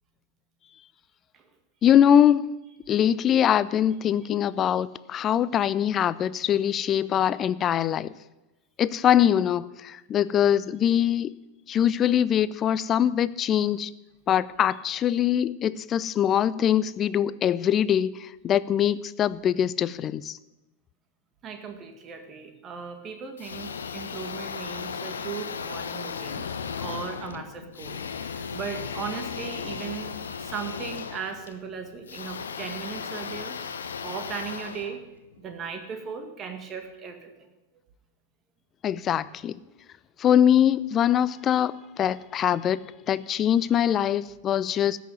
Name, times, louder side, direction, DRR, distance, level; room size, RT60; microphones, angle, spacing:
voice 1, 1.8-2.5 2.9-8.1 8.8-11.3 11.7-13.9 14.3-20.4 38.8-39.6 40.2-42.8 43.1-45.0, left 10 dB, 30° left, 18 dB, 0.5 m, -23 dB
voice 2, 21.4-26.5 26.8-33.6 34.0-35.0 35.4-37.3, right 6 dB, 30° right, 6 dB, 1.9 m, -37 dB
sound 1, 23.4-35.6, left 6 dB, 70° left, 0.9 m, -36 dB
13.5 x 6.3 x 9.3 m, 1.0 s
figure-of-eight pair, 90°, 0 cm